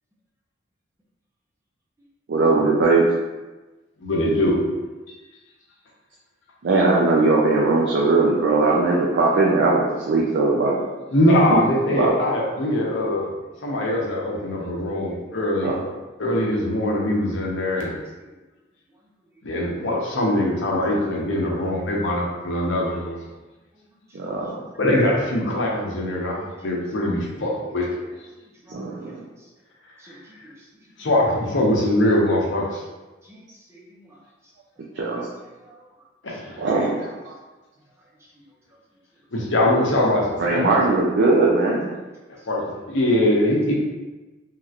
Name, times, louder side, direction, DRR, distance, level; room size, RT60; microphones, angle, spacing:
voice 1, 2.3-3.1 6.6-10.8 11.5-11.6 11.9-12.1 15.6-15.8 24.1-24.6 28.7-29.2 34.9-35.3 36.6-37.3 40.4-41.9, right 3 dB, 65° right, -3 dB, 0.4 m, -20 dB
voice 2, 4.0-4.7 11.1-13.3 13.6-15.7 16.2-17.9 19.4-23.2 24.8-27.9 30.0-30.2 31.0-32.8 36.2-36.6 39.3-40.7 42.5-43.8, left 1 dB, 70° left, -2 dB, 0.7 m, -22 dB
voice 3, 14.3-15.4 18.0-18.3 18.9-19.4 20.9-21.1 22.0-22.1 23.7-24.8 26.3-26.8 27.2-27.4 28.1-29.5 30.0-31.1 32.5-32.6 33.2-34.5 35.1-36.7 37.0-37.1 37.9-38.8 42.4-42.5 43.7-43.8, right 1 dB, 15° right, -4 dB, 0.6 m, -53 dB
3.2 x 2.9 x 2.4 m, 1.2 s
head